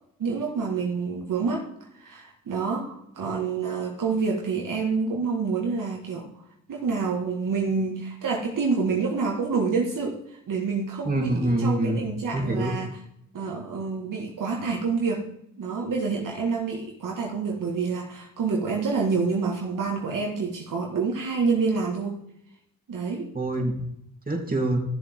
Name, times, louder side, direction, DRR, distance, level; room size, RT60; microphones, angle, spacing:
voice 1, 0.2-1.7 2.0-6.3 6.7-13.0 13.3-15.3 15.6-22.2 22.9-23.3, right 4 dB, 65° right, -1 dB, 1.8 m, -27 dB
voice 2, 11.0-12.0 12.3-12.7 23.3-23.9 24.3-24.8, right 1 dB, 25° right, 1 dB, 3.0 m, -25 dB
13.5 x 7.1 x 3.6 m, 0.75 s
supercardioid pair, 55°, 35 cm